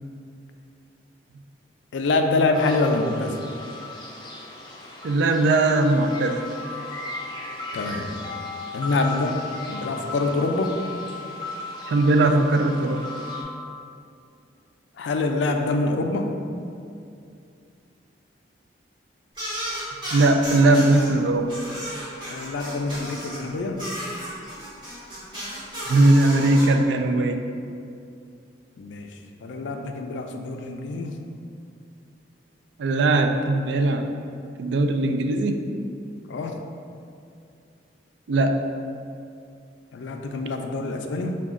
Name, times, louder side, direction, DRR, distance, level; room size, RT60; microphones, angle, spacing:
voice 1, 1.9-3.4 7.7-8.1 8.7-10.8 15.0-16.3 22.3-23.9 28.8-31.2 36.3-36.6 39.9-41.3, left 3 dB, 85° left, 4 dB, 0.4 m, -25 dB
sound 1, 2.5-13.4, left 2 dB, 25° left, 0.4 m, -36 dB
voice 2, 5.0-6.4 11.9-13.0 20.1-21.5 25.9-27.4 32.8-34.1 34.6-35.6 38.3-38.6, right 2 dB, 75° right, 6 dB, 0.3 m, -19 dB
sound 2, 19.3-21.1 21.5-23.4 23.8-26.6, equal, 25° right, 1.1 m, -33 dB
5.0 x 2.2 x 3.6 m, 2.5 s
head